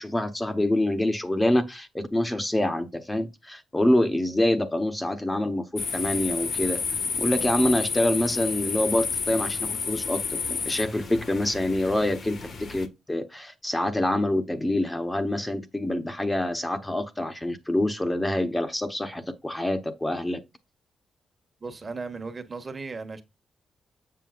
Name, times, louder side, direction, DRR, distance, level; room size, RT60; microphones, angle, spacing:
voice 1, 0.0-6.8 7.2-20.4, left 1 dB, 15° left, 1.0 m, -26 dB
sound 1, 5.8-12.9, left 5 dB, 60° left, 1.4 m, -31 dB
voice 2, 21.6-23.2, right 4 dB, 35° right, 1.3 m, -36 dB
7.6 x 6.3 x 2.5 m
cardioid pair, 90°, 0 cm